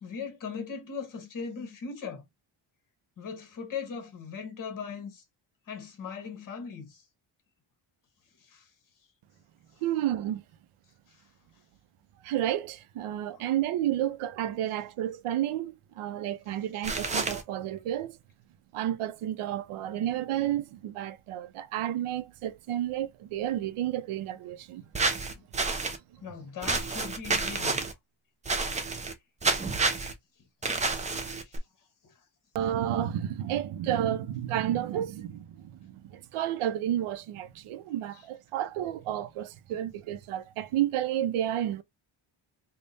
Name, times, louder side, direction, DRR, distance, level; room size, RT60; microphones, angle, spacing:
voice 1, 0.0-2.2 3.2-5.2 5.7-7.0 8.4-8.7 11.1-11.2 13.1-13.5 25.3-25.5 26.2-27.8 31.4-31.6 32.0-32.1 38.1-38.2 39.7-39.9, left 6 dB, 40° left, 1.2 m, -39 dB
voice 2, 9.8-10.4 12.2-18.2 18.7-24.9 32.5-41.8, right 11 dB, 90° right, 0.7 m, -31 dB
sound 1, 16.8-17.4 24.9-26.0 26.6-27.9 28.4-29.1 29.4-30.1 30.6-31.6, right 3 dB, 15° right, 0.4 m, -29 dB
3.5 x 2.3 x 3.9 m
cardioid pair, 160°, 49 cm